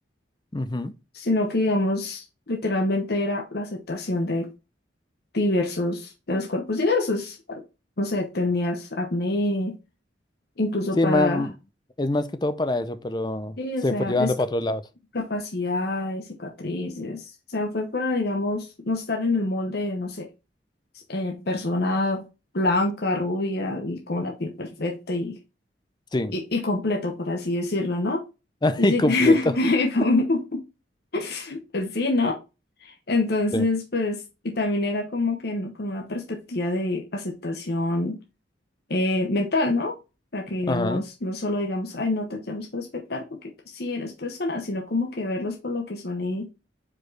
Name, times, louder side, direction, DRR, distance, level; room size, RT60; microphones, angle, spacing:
voice 1, 0.5-0.9 11.0-11.5 12.0-13.6 13.8-14.8 26.1-26.3 28.6-29.4 33.5-33.6 40.7-41.0, left 2 dB, 25° left, 0.5 m, -24 dB
voice 2, 1.1-4.5 5.3-7.6 8.0-9.7 10.6-11.5 13.6-14.3 15.1-20.3 21.1-22.3 22.5-25.4 26.3-28.2 28.8-30.6 31.1-32.4 32.8-38.2 38.9-40.0 40.3-43.4 43.7-46.5, left 2 dB, 55° left, 0.9 m, -26 dB
5.0 x 4.5 x 4.6 m
head